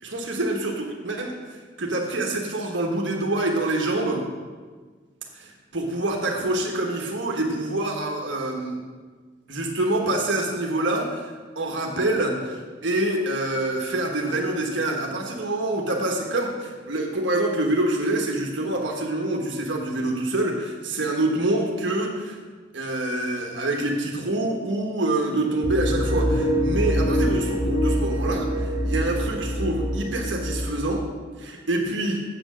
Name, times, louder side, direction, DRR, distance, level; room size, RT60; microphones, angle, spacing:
voice 1, 0.0-4.2 5.3-8.8 9.5-22.4 22.7-31.1 31.4-32.2, right 2 dB, 70° right, 1 dB, 1.3 m, -26 dB
sound 1, 25.6-30.9, equal, 55° left, 1.9 m, -24 dB
8.0 x 7.5 x 6.2 m, 1.5 s
head